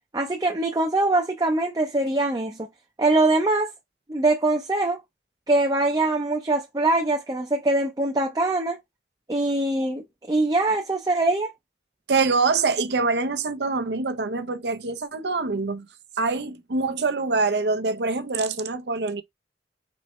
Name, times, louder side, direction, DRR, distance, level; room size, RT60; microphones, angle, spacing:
voice 1, 0.1-2.7 3.0-3.7 4.1-5.0 5.5-8.8 9.3-11.5, right 2 dB, 20° right, 0.5 m, -23 dB
voice 2, 12.1-15.9 16.2-19.2, right 4 dB, 70° right, 0.7 m, -25 dB
4.3 x 3.1 x 3.1 m
head